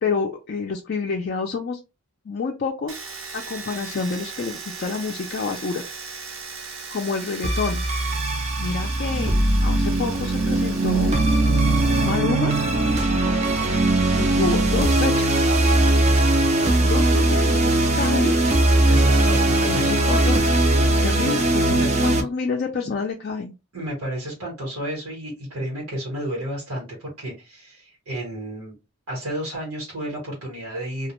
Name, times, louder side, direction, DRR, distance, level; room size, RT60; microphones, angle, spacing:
voice 1, 0.0-1.8 2.3-3.0 3.3-5.8 6.9-7.8 8.6-9.3 9.6-11.1 12.0-12.5 14.2-15.5 16.8-18.4 19.7-20.5 21.0-23.5, left 4 dB, 45° left, 1 dB, 0.3 m, -28 dB
Domestic sounds home sounds, 2.9-12.2 12.5-13.3, right 4 dB, 60° right, 0.7 m, -38 dB
sound 1, 7.4-22.2, right 2 dB, 30° right, 0.4 m, -20 dB
voice 2, 18.9-20.0 21.2-21.3 21.7-21.9 23.7-28.7 29.1-31.1, right 1 dB, 80° right, -4 dB, 1.2 m, -31 dB
2.3 x 2.1 x 2.9 m, 0.27 s
head